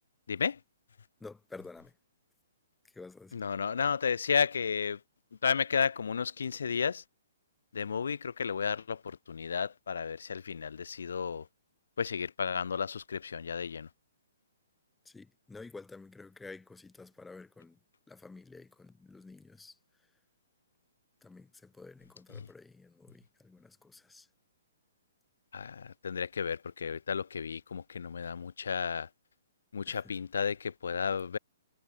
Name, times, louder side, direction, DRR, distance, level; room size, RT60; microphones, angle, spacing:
voice 1, 0.3-0.6 3.3-5.0 5.4-7.0 7.7-11.5 12.0-13.9 22.3-22.5 25.5-29.1 29.7-31.4, left 6 dB, 80° left, 1.8 m, -32 dB
voice 2, 1.2-1.9 2.9-3.4 15.0-17.8 18.1-19.8 21.2-24.3 29.9-30.2, left 3 dB, 5° left, 2.7 m, -50 dB
hypercardioid pair, 150°, 0 cm